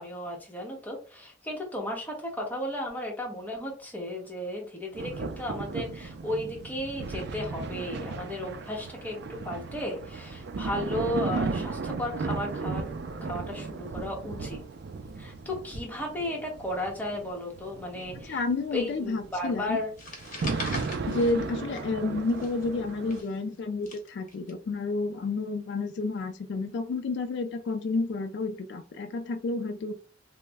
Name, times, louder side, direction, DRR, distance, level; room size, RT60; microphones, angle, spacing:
voice 1, 0.0-12.8 13.2-14.6 15.2-18.4 18.7-19.9, left 1 dB, 10° left, -1 dB, 0.9 m, -34 dB
sound 1, 4.9-23.2, right 4 dB, 60° right, 0.4 m, -36 dB
voice 2, 18.3-19.8 21.1-29.9, left 3 dB, 60° left, 7 dB, 0.3 m, -30 dB
sound 2, 20.0-22.0 22.3-24.5, left 2 dB, 45° left, 0.9 m, -40 dB
3.2 x 2.0 x 3.4 m, 0.37 s
head